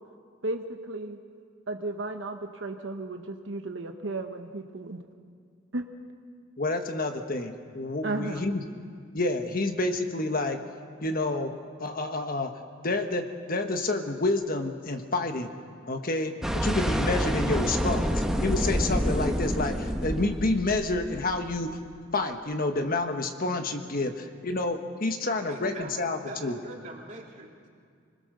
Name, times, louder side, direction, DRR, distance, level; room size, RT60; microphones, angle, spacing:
voice 1, 0.4-1.2 1.7-5.0 5.7-5.8 8.0-8.4, right 2 dB, 65° right, 5 dB, 1.2 m, -34 dB
voice 2, 6.6-8.6 9.1-10.6 11.0-11.5 11.8-12.5 12.8-13.2 13.5-15.5 15.9-18.1 18.4-21.8 22.1-26.5, left 2 dB, 45° left, 6 dB, 1.3 m, -29 dB
sound 1, 16.4-21.6, equal, ahead, 1.2 m, -28 dB
voice 3, 25.5-27.5, right 2 dB, 40° right, -2 dB, 3.4 m, -42 dB
26.0 x 20.5 x 6.7 m, 2.2 s
head